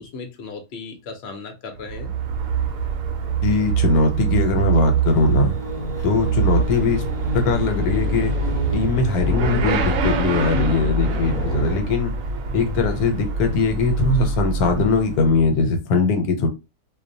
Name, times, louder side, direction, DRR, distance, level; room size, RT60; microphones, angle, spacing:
voice 1, 0.0-2.1, left 4 dB, 60° left, 4 dB, 0.8 m, -36 dB
Motorcycle / Accelerating revving vroom, 1.8-15.6, right 4 dB, 75° right, 1.0 m, -24 dB
voice 2, 3.4-5.5 6.0-8.3 8.7-12.1 12.5-16.5, left 3 dB, 90° left, 5 dB, 1.1 m, -21 dB
sound 1, 5.0-11.8, left 2 dB, 5° left, 0.5 m, -38 dB
2.5 x 2.1 x 2.6 m, 0.25 s
omnidirectional pair, 1.5 m